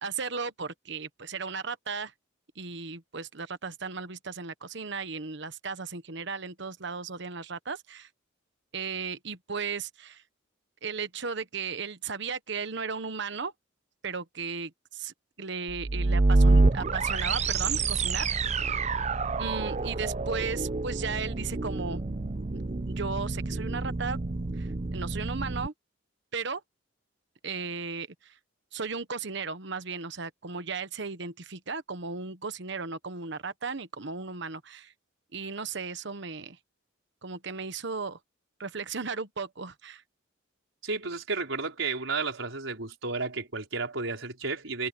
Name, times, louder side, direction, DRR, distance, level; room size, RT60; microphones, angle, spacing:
voice 1, 0.0-2.1 2.6-8.1 8.7-10.2 10.8-13.5 14.0-18.5 19.4-22.0 22.9-24.2 24.6-25.7 26.3-26.6 27.4-28.3 28.7-34.9 35.3-36.6 37.2-38.2 38.6-40.0, right 5 dB, 65° right, 1.2 m, -35 dB
sound 1, 15.7-25.7, right 3 dB, 35° right, 0.6 m, -27 dB
voice 2, 40.8-44.9, right 4 dB, 80° right, 4.8 m, -32 dB
head